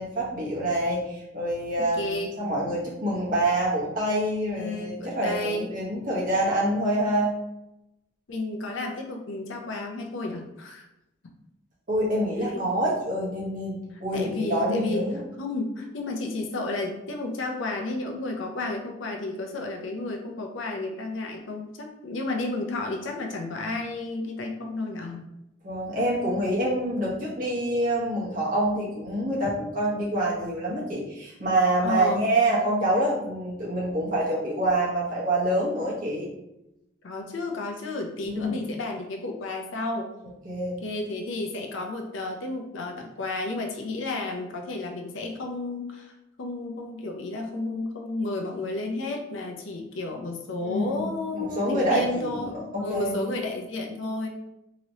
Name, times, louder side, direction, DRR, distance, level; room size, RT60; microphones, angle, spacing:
voice 1, 0.0-7.3 11.9-15.2 25.6-36.3 38.2-38.6 40.4-40.8 50.6-53.1, right 1 dB, 45° right, -5 dB, 1.1 m, -26 dB
voice 2, 1.8-2.4 4.5-5.7 8.3-10.8 12.5-12.6 14.1-15.1 15.4-25.3 31.8-32.3 37.0-40.1 40.8-46.1 46.4-54.3, left 2 dB, 80° left, 2 dB, 0.5 m, -32 dB
2.9 x 2.9 x 2.7 m, 0.89 s
head